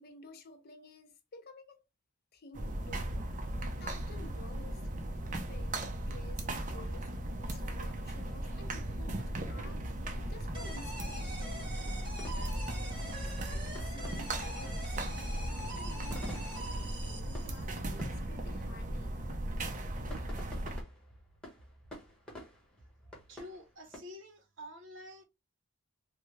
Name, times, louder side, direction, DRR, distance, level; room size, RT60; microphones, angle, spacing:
voice 1, 0.0-1.8 2.3-3.3 3.8-4.8 5.5-9.9 10.2-16.5 16.8-19.3, left 2 dB, 45° left, 0.6 m, -53 dB
sound 1, 2.5-20.8, right 1 dB, 35° right, 0.5 m, -37 dB
sound 2, 10.5-17.9, right 1 dB, 20° right, 1.5 m, -45 dB
sound 3, 10.6-24.0, equal, 5° left, 1.0 m, -52 dB
voice 2, 23.0-25.2, left 1 dB, 60° right, 0.9 m, -49 dB
3.4 x 2.1 x 3.2 m
head